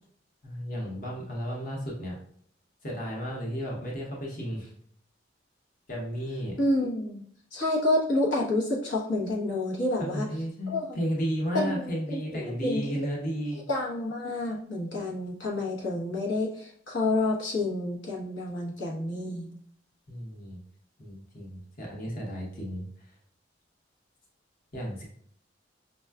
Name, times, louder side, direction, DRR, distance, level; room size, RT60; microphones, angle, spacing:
voice 1, 0.4-2.2 2.8-4.7 5.9-6.6 10.0-13.6 20.1-20.6 21.0-22.9 24.7-25.0, equal, 45° left, -2 dB, 0.9 m, -33 dB
voice 2, 6.6-7.2 7.5-10.3 10.7-11.0 11.5-11.7 12.1-13.0 13.7-19.5, left 2 dB, 80° left, -3 dB, 0.9 m, -29 dB
5.4 x 2.3 x 2.3 m, 0.62 s
head